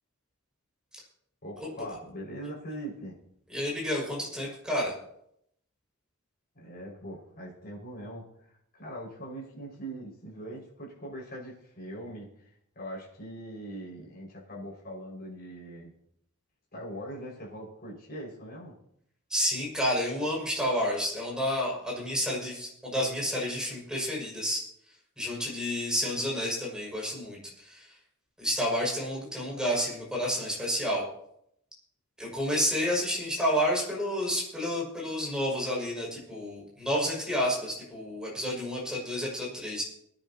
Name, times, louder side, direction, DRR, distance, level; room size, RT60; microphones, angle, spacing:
voice 1, 1.4-3.1 6.5-15.9 16.7-18.7, right 1 dB, 45° left, -3 dB, 5.7 m, -41 dB
voice 2, 3.5-4.9 19.3-24.6 25.2-28.0 28.4-31.0 32.2-39.8, equal, 5° right, -4 dB, 6.1 m, -30 dB
23.0 x 10.0 x 2.9 m, 0.74 s
head